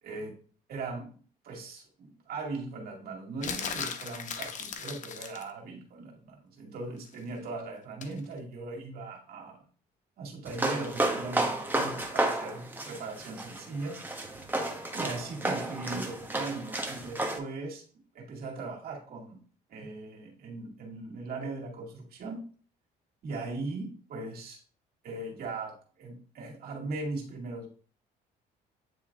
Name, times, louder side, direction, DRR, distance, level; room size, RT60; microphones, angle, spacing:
voice 1, 0.0-0.3 0.7-1.1 1.4-9.6 10.2-14.0 14.9-17.8 18.1-19.4 19.7-22.4 23.2-24.6 25.0-27.7, right 3 dB, 65° right, -1 dB, 2.3 m, -39 dB
sound 1, 3.4-5.5 8.0-8.2, left 6 dB, 45° left, 1.0 m, -37 dB
sound 2, 10.5-17.4, right 2 dB, 10° right, 1.2 m, -32 dB
9.3 x 3.2 x 3.6 m, 0.42 s
cardioid pair, 110°, 17 cm